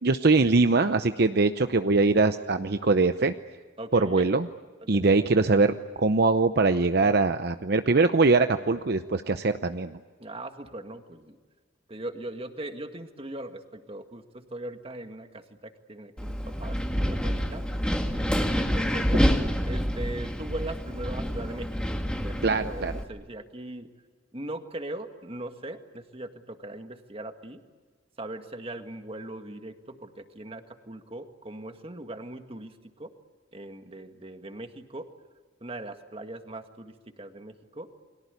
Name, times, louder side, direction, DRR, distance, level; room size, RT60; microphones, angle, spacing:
voice 1, 0.0-3.3 3.9-4.5 4.9-10.0 22.4-22.9, right 3 dB, 55° right, 9 dB, 0.8 m, -22 dB
voice 2, 3.8-4.3 4.8-5.4 10.2-11.4 11.9-17.7 18.6-19.1 19.6-21.8 22.2-23.9 24.3-27.6 28.2-33.1 33.5-35.1 35.6-37.9, right 1 dB, 30° right, 6 dB, 1.9 m, -40 dB
Wind, 16.2-23.0, equal, 5° left, 1.9 m, -27 dB
30.0 x 23.0 x 8.3 m, 1.4 s
head